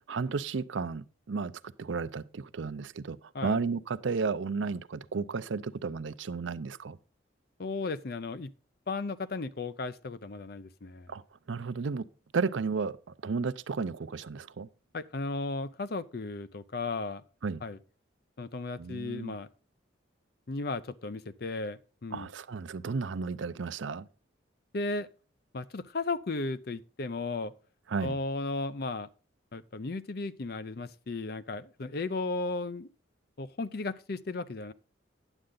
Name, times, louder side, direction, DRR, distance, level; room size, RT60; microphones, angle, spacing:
voice 1, 0.1-1.5 1.8-7.0 11.1-11.2 11.5-12.1 12.3-13.0 13.2-14.7 17.4-17.6 18.8-19.3 22.1-24.1 27.9-28.2, right 4 dB, 75° right, 0.5 m, -33 dB
voice 2, 7.6-8.5 8.9-11.1 14.9-17.2 17.6-17.8 18.4-19.5 20.5-22.3 24.7-25.1 25.5-27.5 28.0-29.1 29.5-32.9 33.4-34.7, left 3 dB, 50° left, 0.5 m, -35 dB
9.9 x 7.7 x 3.8 m
head